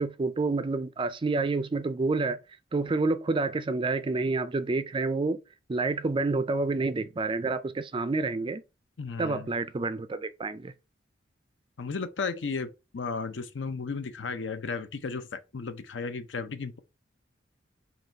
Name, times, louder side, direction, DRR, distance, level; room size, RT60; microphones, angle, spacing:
voice 1, 0.0-2.4 2.7-5.4 5.7-8.6 9.2-10.7, right 3 dB, 25° right, 0.4 m, -28 dB
voice 2, 9.0-9.5 11.8-16.8, left 4 dB, 70° left, 0.6 m, -34 dB
3.9 x 3.0 x 4.3 m
head